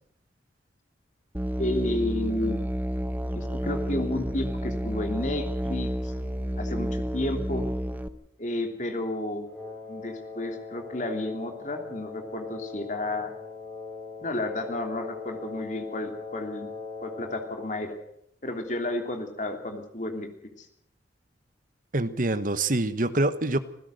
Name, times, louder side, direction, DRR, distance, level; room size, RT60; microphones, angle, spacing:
Musical instrument, 1.3-8.1, equal, 10° right, 0.9 m, -30 dB
voice 1, 1.6-2.6 3.3-6.1 6.6-7.7 8.4-9.5 9.9-13.3 14.2-16.7 17.0-18.0 18.4-20.3 20.6-20.7, left 1 dB, 40° left, 5 dB, 3.1 m, -31 dB
Wind instrument woodwind instrument, 9.4-17.8, left 4 dB, 15° left, 7.5 m, -40 dB
voice 2, 21.9-23.6, right 2 dB, 45° right, 12 dB, 1.2 m, -25 dB
26.0 x 16.0 x 6.6 m, 0.75 s
head